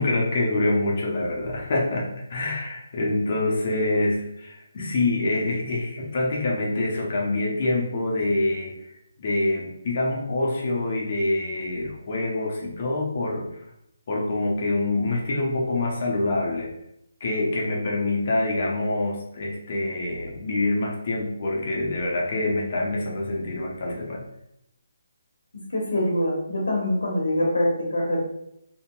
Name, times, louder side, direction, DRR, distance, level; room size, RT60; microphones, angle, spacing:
voice 1, 0.0-8.7 9.2-13.5 14.1-16.7 17.2-24.2, left 2 dB, 45° left, -2 dB, 0.8 m, -26 dB
voice 2, 25.7-28.2, left 1 dB, 80° left, -3 dB, 0.8 m, -24 dB
2.7 x 2.7 x 2.2 m, 0.79 s
hypercardioid pair, 160°, 0 cm